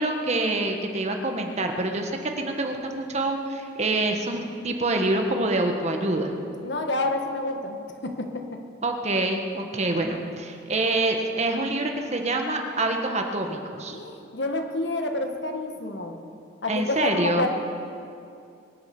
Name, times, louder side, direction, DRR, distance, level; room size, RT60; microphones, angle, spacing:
voice 1, 0.0-6.3 8.8-14.0 16.7-17.5, right 2 dB, 40° right, 3 dB, 1.5 m, -26 dB
voice 2, 6.6-8.6 13.9-16.2 16.6-17.5, left 2 dB, 70° left, 4 dB, 1.6 m, -29 dB
23.0 x 9.8 x 6.1 m, 2.5 s
head